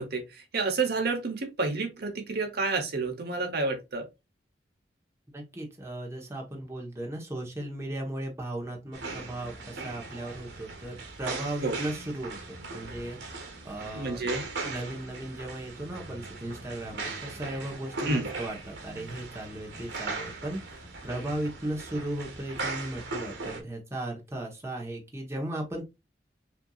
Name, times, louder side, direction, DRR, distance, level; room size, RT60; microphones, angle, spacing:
voice 1, 0.0-4.1 11.6-11.8 13.9-14.4 18.0-18.3, right 3 dB, 65° right, 1.0 m, -30 dB
voice 2, 5.3-14.2 14.6-25.9, right 1 dB, 15° right, 1.1 m, -36 dB
sound 1, 8.9-23.6, right 3 dB, 85° right, 1.1 m, -39 dB
5.7 x 2.7 x 2.4 m
head